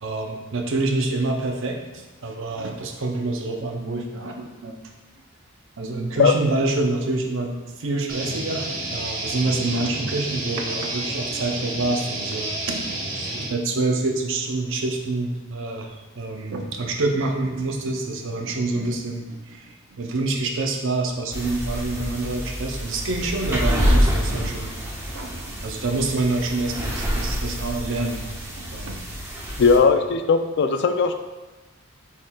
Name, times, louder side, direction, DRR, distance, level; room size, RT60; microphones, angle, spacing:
voice 1, 0.0-4.8 5.8-24.8 25.1-28.3 28.6-29.0 29.9-30.0, right 2 dB, 65° right, 2 dB, 0.6 m, -27 dB
sound 1, 8.1-13.5, right 2 dB, 40° right, 1.0 m, -30 dB
sound 2, 21.3-29.8, equal, 15° right, 0.7 m, -26 dB
voice 2, 29.6-31.1, left 5 dB, 55° left, 8 dB, 0.4 m, -18 dB
6.3 x 3.7 x 2.3 m, 1.2 s
head